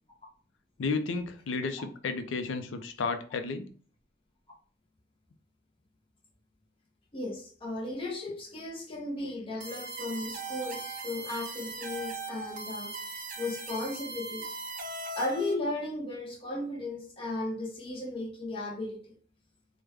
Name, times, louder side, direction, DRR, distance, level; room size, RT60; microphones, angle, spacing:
voice 1, 0.8-3.7, left 4 dB, 85° left, 8 dB, 0.4 m, -32 dB
voice 2, 7.1-14.5 15.2-19.1, left 2 dB, 30° left, -1 dB, 0.6 m, -35 dB
sound 1, 9.6-15.5, right 3 dB, 45° right, 0.5 m, -39 dB
3.3 x 2.1 x 3.4 m, 0.43 s
head